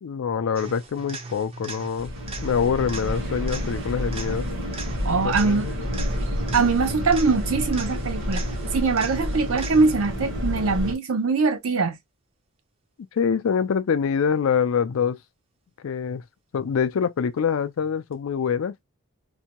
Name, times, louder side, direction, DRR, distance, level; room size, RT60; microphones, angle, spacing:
voice 1, 0.0-2.1 2.4-4.4 5.2-5.7 13.1-15.2 15.8-16.2 16.5-18.7, left 6 dB, 70° left, 0.4 m, -25 dB
sound 1, 0.5-10.2 18.1-18.2, right 3 dB, 25° right, 0.5 m, -39 dB
sound 2, 2.0-10.9, equal, 55° right, 1.1 m, -29 dB
voice 2, 5.0-5.7 6.5-8.4 8.7-12.0, right 4 dB, 75° right, 0.7 m, -22 dB
2.7 x 2.2 x 2.8 m
head